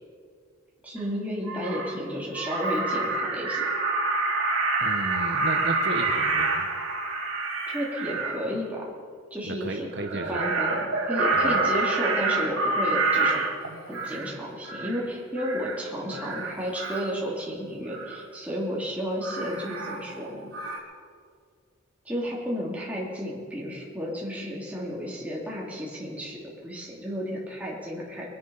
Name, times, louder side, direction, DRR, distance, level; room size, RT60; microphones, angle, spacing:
voice 1, 0.8-3.7 7.7-8.9 9.3-9.9 10.3-13.4 13.9-20.5 22.0-28.2, equal, 5° right, -5 dB, 2.9 m, -32 dB
Crow, 1.0-1.1 1.4-2.0 2.3-8.4 10.0-14.3 14.6-15.0 15.4-15.8 16.1-17.1 17.9-18.2 19.2-20.3 20.5-20.8, right 3 dB, 75° right, 3.7 m, -27 dB
voice 2, 4.8-6.7 9.4-10.5 11.4-11.8, right 2 dB, 50° right, 3 dB, 1.0 m, -34 dB
22.0 x 10.5 x 5.6 m, 2.1 s
head